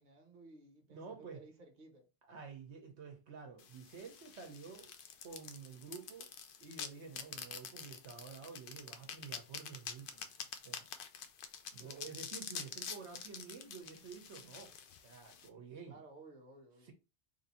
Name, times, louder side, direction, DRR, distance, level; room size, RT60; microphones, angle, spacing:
voice 1, 0.0-2.1 11.7-12.2 15.9-16.9, right 2 dB, 45° right, 1.1 m, -57 dB
voice 2, 0.9-1.4 2.3-4.9 5.2-6.3 6.6-10.4 10.6-10.9 11.7-14.7 15.0-16.0 16.8-16.9, right 5 dB, 80° right, 1.2 m, -50 dB
sound 1, 3.6-15.5, left 7 dB, 60° left, 0.7 m, -47 dB
3.4 x 2.6 x 4.2 m
omnidirectional pair, 1.1 m